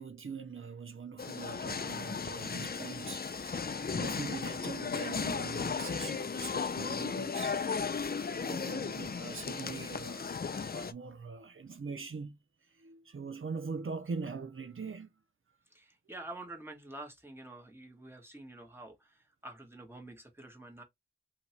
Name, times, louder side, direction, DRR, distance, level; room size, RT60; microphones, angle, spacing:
voice 1, 0.0-7.6 8.4-15.1, right 5 dB, 75° right, 0.5 m, -42 dB
sound 1, 1.2-10.9, left 5 dB, 50° left, 0.4 m, -35 dB
voice 2, 15.7-20.8, right 2 dB, 10° right, 1.4 m, -48 dB
2.9 x 2.8 x 4.3 m
wide cardioid pair, 40°, 21 cm